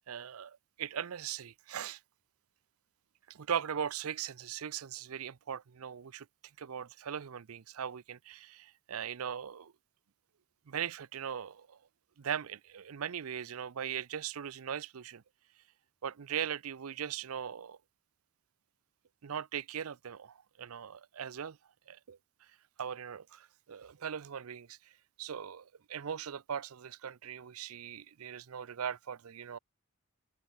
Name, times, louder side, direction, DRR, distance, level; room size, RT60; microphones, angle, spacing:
voice 1, 0.1-2.0 3.3-6.3 6.6-9.7 10.7-11.8 12.2-15.2 16.0-17.8 19.2-21.6 21.9-22.2 22.8-24.8 25.2-29.6, right 8 dB, 85° right, 0.5 m, -39 dB
head